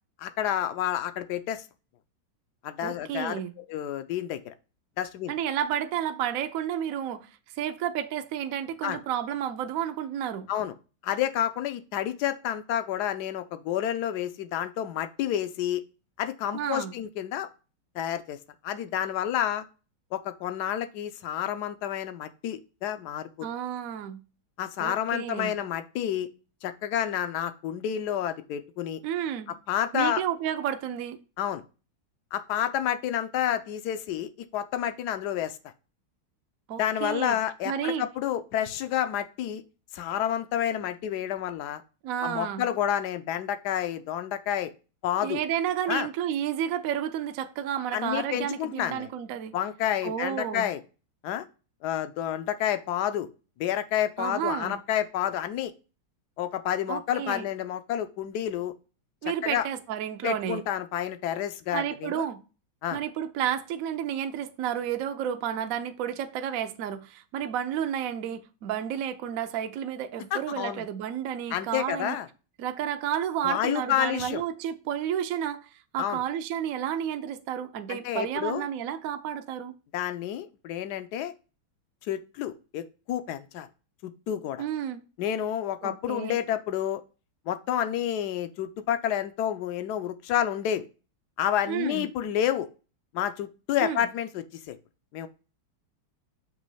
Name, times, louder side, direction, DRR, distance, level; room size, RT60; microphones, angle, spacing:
voice 1, 0.2-1.6 2.6-4.5 5.0-5.3 8.8-9.0 10.5-10.7 11.0-15.8 16.2-17.5 17.9-18.4 18.6-19.6 20.1-23.5 24.6-26.3 26.6-29.0 29.7-30.2 31.4-31.6 32.3-35.6 36.8-39.6 39.9-41.8 42.2-44.7 45.0-45.4 45.9-46.1 47.9-49.1 49.5-50.8 51.2-51.4 51.8-53.3 53.6-55.7 56.4-58.7 59.2-59.7 60.2-62.3 62.8-63.0 70.3-70.8 71.5-72.3 73.4-74.4 76.0-76.2 77.9-78.7 79.9-81.3 82.0-83.7 84.0-84.6 85.2-87.0 87.5-90.8 91.4-92.7 93.1-94.8 95.1-95.3, left 10 dB, 75° left, 1.0 m, -29 dB
voice 2, 2.8-3.5 5.3-10.5 16.5-16.9 23.4-24.2 24.8-25.6 29.0-29.5 29.9-31.2 36.7-37.4 37.6-38.1 42.0-42.7 45.2-49.5 50.0-50.7 54.2-54.8 56.9-57.5 59.2-60.6 61.7-62.4 62.9-72.2 72.6-79.7 84.6-85.0 85.8-86.4 91.7-92.1 93.8-94.1, right 9 dB, 70° right, 0.8 m, -31 dB
6.2 x 3.0 x 5.4 m
omnidirectional pair, 2.2 m